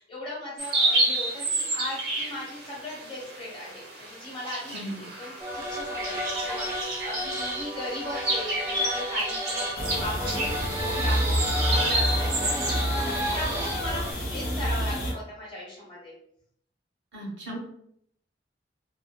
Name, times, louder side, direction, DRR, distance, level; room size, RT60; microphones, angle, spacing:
voice 1, 0.0-16.1, left 1 dB, 25° left, -5 dB, 0.9 m, -38 dB
sound 1, 0.6-14.2, right 1 dB, 55° right, 0.6 m, -31 dB
voice 2, 4.7-5.1 17.1-17.6, right 1 dB, 80° right, -2 dB, 0.9 m, -36 dB
sound 2, 5.4-14.1, equal, 15° right, 0.4 m, -32 dB
sound 3, 9.8-15.1, equal, 55° left, 0.8 m, -28 dB
2.5 x 2.2 x 2.2 m, 0.69 s
head